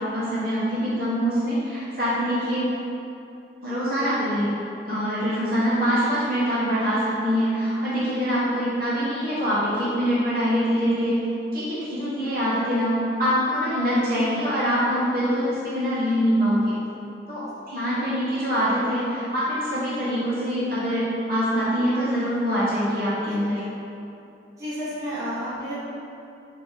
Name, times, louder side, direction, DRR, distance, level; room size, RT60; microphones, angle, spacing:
voice 1, 0.0-2.7 3.6-4.5 4.9-11.2 11.5-16.7 17.3-23.6, equal, 50° right, -10 dB, 0.9 m, -24 dB
voice 2, 24.6-25.8, equal, 15° right, -12 dB, 1.1 m, -31 dB
3.5 x 2.8 x 3.9 m, 2.7 s
head